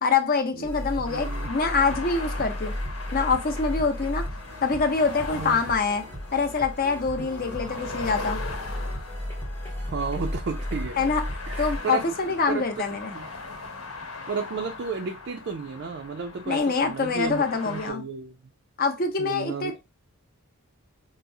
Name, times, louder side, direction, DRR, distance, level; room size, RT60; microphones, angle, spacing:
voice 1, 0.0-2.7 3.1-4.2 4.6-6.0 6.3-8.4 11.0-11.2 11.6-13.1 16.5-18.0 18.8-19.9, left 4 dB, 40° left, 0.6 m, -25 dB
sound 1, 0.6-13.8, left 1 dB, 10° left, 0.9 m, -35 dB
sound 2, 1.0-17.9, left 3 dB, 80° left, 1.1 m, -39 dB
voice 2, 1.1-1.5 5.3-5.6 7.2-7.3 9.9-11.0 11.5-12.0 12.5-12.6 13.1-13.3 14.3-18.4 19.2-19.9, right 5 dB, 50° right, 0.3 m, -33 dB
4.6 x 2.0 x 2.6 m
head